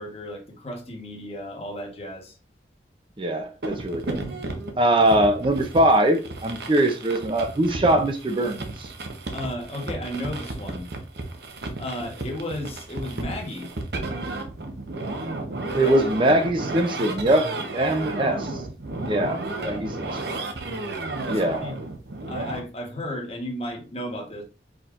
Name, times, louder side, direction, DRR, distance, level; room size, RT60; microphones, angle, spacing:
voice 1, 0.0-2.4 9.3-10.9 11.8-13.7 15.7-16.0 19.6-20.0 21.3-21.8 22.2-24.4, left 1 dB, 35° left, 1.1 m, -34 dB
voice 2, 3.2-4.2 4.8-8.9 15.7-18.5 19.0-20.1 21.3-21.6, right 1 dB, 25° right, 0.5 m, -22 dB
sound 1, 3.6-22.6, right 2 dB, 65° right, 0.9 m, -33 dB
5.0 x 4.3 x 2.5 m
head